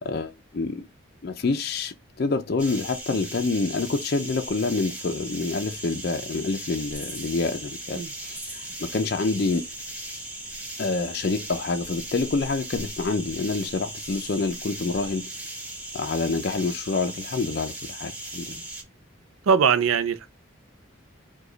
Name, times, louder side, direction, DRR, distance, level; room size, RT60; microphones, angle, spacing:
voice 1, 0.0-0.9 1.2-9.6 10.8-15.2 15.9-18.6, left 3 dB, 50° left, 0.4 m, -27 dB
sound 1, 2.6-18.8, right 1 dB, 5° right, 1.2 m, -38 dB
voice 2, 19.5-20.3, right 6 dB, 85° right, 0.4 m, -21 dB
4.9 x 2.3 x 3.8 m
head